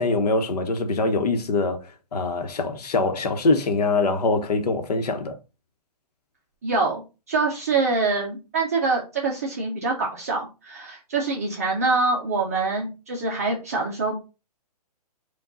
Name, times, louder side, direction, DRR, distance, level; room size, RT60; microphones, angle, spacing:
voice 1, 0.0-5.4, left 3 dB, 75° left, 0.9 m, -23 dB
voice 2, 6.6-7.0 7.3-14.2, right 3 dB, 25° right, 0.4 m, -25 dB
4.8 x 2.3 x 3.8 m
hypercardioid pair, 175°, 20 cm